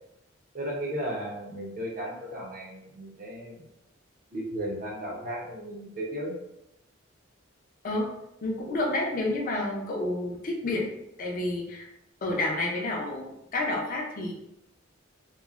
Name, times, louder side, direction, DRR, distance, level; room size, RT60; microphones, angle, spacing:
voice 1, 0.5-3.6 4.3-6.3, right 1 dB, 45° right, -3 dB, 0.7 m, -35 dB
voice 2, 8.4-11.9 12.2-14.3, left 2 dB, 45° left, 0 dB, 0.5 m, -30 dB
3.0 x 2.1 x 2.4 m, 0.83 s
head